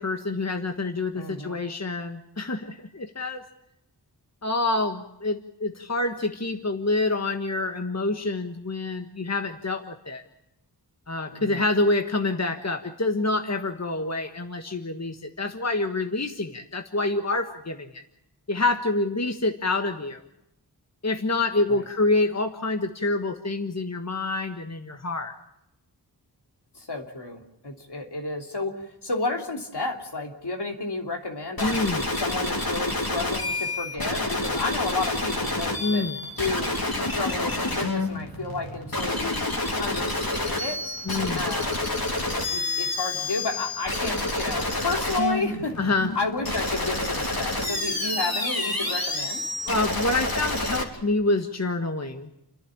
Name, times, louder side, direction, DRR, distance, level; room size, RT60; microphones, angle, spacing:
voice 1, 0.0-3.4 4.4-10.2 11.1-18.0 18.5-20.2 21.0-25.3 31.6-32.0 35.8-36.2 41.0-41.5 45.8-46.1 49.6-52.3, left 2 dB, 40° left, 6 dB, 1.5 m, -27 dB
voice 2, 1.2-1.6 11.3-11.6 21.7-21.8 26.7-31.8 32.2-36.1 36.4-36.8 37.0-39.4 39.8-40.9 41.3-41.9 42.5-45.8 46.1-49.4, left 3 dB, 80° left, 2 dB, 3.1 m, -31 dB
sound 1, 31.6-50.8, left 2 dB, 60° left, 3.5 m, -28 dB
29.5 x 11.0 x 10.0 m, 0.85 s
wide cardioid pair, 55°, 40 cm